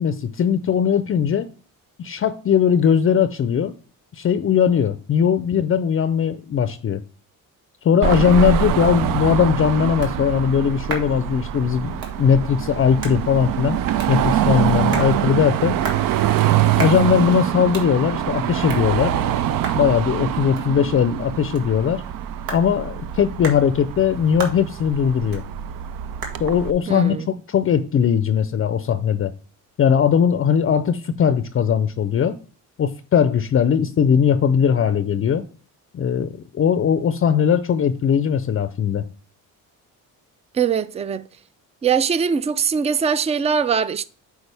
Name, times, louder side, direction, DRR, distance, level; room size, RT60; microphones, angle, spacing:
voice 1, 0.0-1.5 2.0-3.7 4.2-7.0 7.8-13.8 14.1-15.8 16.6-19.1 19.8-22.0 22.5-25.4 26.4-27.2 27.5-29.3 29.8-32.4 32.8-35.5 35.9-39.1, left 7 dB, 40° left, 0.5 m, -19 dB
Car passing by / Traffic noise roadway noise / Engine, 8.0-26.7, right 11 dB, 70° right, 0.5 m, -24 dB
sound 1, 10.4-28.4, right 3 dB, 90° right, 1.8 m, -39 dB
voice 2, 26.9-27.3 40.5-41.2 41.8-44.0, right 6 dB, 20° right, 0.3 m, -21 dB
8.2 x 4.8 x 3.3 m
cardioid pair, 110°, 35 cm